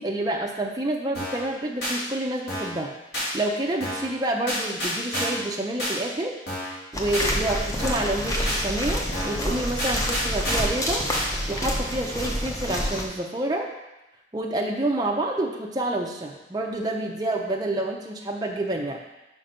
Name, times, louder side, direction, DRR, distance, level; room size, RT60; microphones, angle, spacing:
voice 1, 0.0-2.9 3.3-6.4 6.9-11.0 11.5-13.7 14.3-19.0, right 1 dB, 20° right, 0 dB, 0.6 m, -28 dB
sound 1, 1.1-1.5 1.8-2.0 2.5-2.8 3.1-3.3 3.8-4.1 4.5-5.5 5.8-6.0 6.5-6.8 7.1-7.3 7.8-8.1 8.4-8.6 9.1-9.4 9.8-10.8 11.1-11.3, equal, 65° left, 2.9 m, -29 dB
sound 2, 6.9-13.1, equal, 20° left, 0.8 m, -28 dB
5.9 x 5.2 x 5.0 m, 0.96 s
head